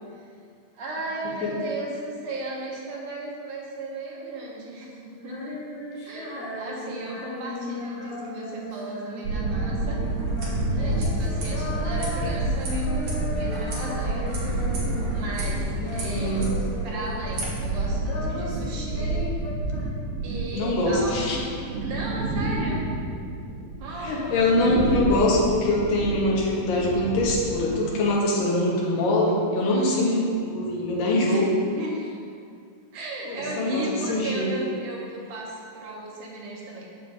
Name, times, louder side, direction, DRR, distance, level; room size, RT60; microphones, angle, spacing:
voice 1, 0.7-5.6 6.0-10.0 10.7-14.2 15.1-15.6 15.9-16.4 16.8-19.2 20.2-21.5 21.8-22.9 23.8-24.5 29.6-30.2 31.1-31.5 31.8-31.9 32.9-36.9, right 1 dB, 70° right, -3 dB, 2.3 m, -35 dB
Female singing, 5.2-15.5 15.8-17.4 17.7-20.4, left 1 dB, 65° left, 2.5 m, -36 dB
sound 1, 9.2-27.7, right 2 dB, 90° right, 2.5 m, -30 dB
sound 2, 10.0-17.5, right 1 dB, 55° right, 1.6 m, -33 dB
voice 2, 15.8-16.5 20.5-21.4 24.0-31.5 33.3-34.5, left 1 dB, 90° left, -4 dB, 2.6 m, -23 dB
7.4 x 6.9 x 2.6 m, 2.3 s
omnidirectional pair, 3.9 m